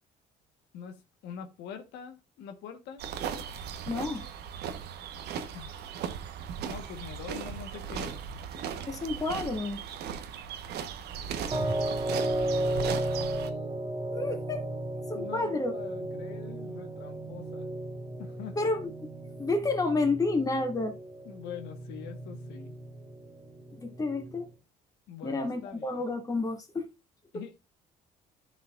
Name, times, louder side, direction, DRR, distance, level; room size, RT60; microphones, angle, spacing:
voice 1, 0.7-3.0 5.5-5.8 6.6-8.1 10.8-13.5 15.1-17.7 18.2-18.6 21.2-22.8 25.1-26.0 27.3-27.6, left 8 dB, 85° left, 1.4 m, -45 dB
sound 1, 3.0-13.5, right 8 dB, 75° right, 1.2 m, -37 dB
voice 2, 3.9-4.3 8.9-9.8 14.1-14.7 15.1-15.7 18.6-19.1 19.4-21.0 23.7-24.5 25.2-26.9, left 3 dB, 20° left, 2.5 m, -30 dB
sound 2, 11.5-24.5, right 1 dB, 30° right, 1.6 m, -34 dB
14.0 x 5.7 x 2.5 m
cardioid pair, 110°, 17 cm